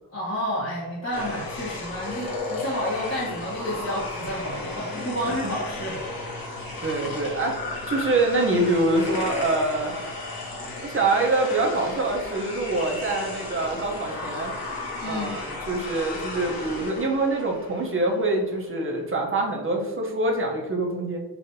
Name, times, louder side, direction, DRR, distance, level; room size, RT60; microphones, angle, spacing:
voice 1, 0.1-6.0 15.0-15.4, equal, 40° left, -9 dB, 1.1 m, -30 dB
sound 1, 1.1-18.4, left 2 dB, 60° left, 1.1 m, -34 dB
voice 2, 6.8-7.6 7.9-9.9 10.8-14.5 15.0-21.2, right 2 dB, 30° right, 0 dB, 0.7 m, -25 dB
5.6 x 2.6 x 2.7 m, 1.2 s
wide cardioid pair, 110°, 39 cm